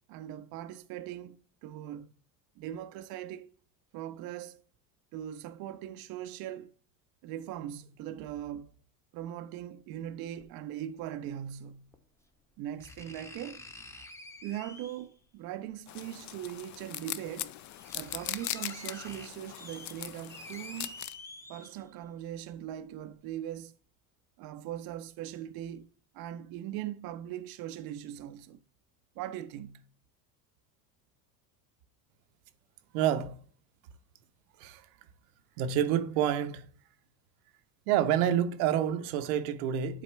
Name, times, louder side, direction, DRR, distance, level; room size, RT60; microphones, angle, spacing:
voice 1, 0.1-2.1 2.6-3.5 3.9-4.6 5.1-6.7 7.2-8.7 9.1-11.9 12.6-13.7 14.4-17.5 17.9-20.9 21.5-23.8 24.4-25.9 26.1-28.6 29.2-29.9, right 11 dB, 55° right, 0.5 m, -40 dB
sound 1, 10.4-10.5 11.9-12.0 12.8-15.2 16.5-16.6 17.3-17.4 17.6-22.0 22.5-22.6, left 2 dB, 5° left, 0.8 m, -48 dB
sound 2, 15.9-21.1, left 14 dB, 45° left, 0.5 m, -40 dB
voice 2, 32.9-33.4 34.6-34.8 35.6-36.7 37.9-40.0, right 10 dB, 80° right, 0.8 m, -28 dB
7.6 x 4.2 x 3.2 m
supercardioid pair, 105°, 44 cm